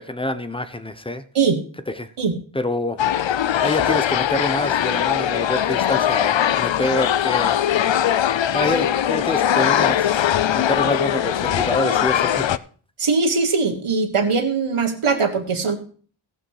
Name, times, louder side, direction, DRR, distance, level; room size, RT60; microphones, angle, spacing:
voice 1, 0.0-1.2 1.9-2.1 2.5-3.0 3.6-7.6 8.5-10.2 10.5-12.6, left 1 dB, 10° left, 11 dB, 0.9 m, -26 dB
sound 1, 3.0-12.6, left 10 dB, 65° left, 0.6 m, -20 dB
voice 2, 13.0-15.8, right 4 dB, 85° right, 4 dB, 1.5 m, -20 dB
16.5 x 6.1 x 4.8 m, 0.43 s
wide cardioid pair, 75°, 49 cm